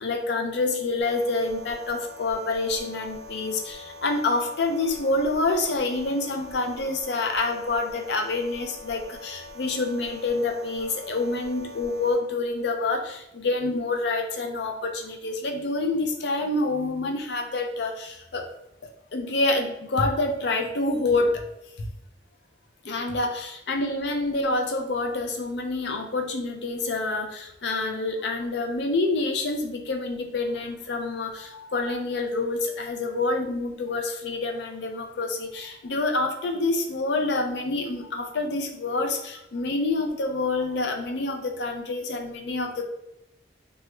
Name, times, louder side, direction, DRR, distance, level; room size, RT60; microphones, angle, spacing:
voice 1, 0.0-18.5 19.1-21.5 22.8-42.8, left 2 dB, 65° left, 4 dB, 0.4 m, -27 dB
sound 1, 1.0-12.2, left 1 dB, 80° right, 0.5 m, -44 dB
3.0 x 2.3 x 3.1 m, 0.84 s
head